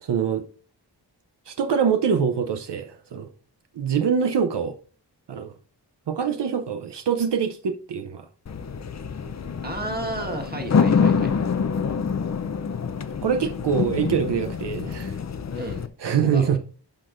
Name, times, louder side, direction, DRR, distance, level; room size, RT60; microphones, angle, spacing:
voice 1, 0.0-0.5 1.5-3.3 3.7-4.7 5.3-5.5 6.1-8.3 10.2-10.3 13.2-15.2 16.0-16.6, right 7 dB, 75° right, 0.7 m, -24 dB
sound 1, 8.5-15.9, left 6 dB, 40° left, 0.5 m, -26 dB
voice 2, 9.6-11.3 15.5-15.8 16.2-16.6, right 1 dB, 20° right, 1.6 m, -32 dB
11.5 x 6.0 x 2.5 m
wide cardioid pair, 100°, 42 cm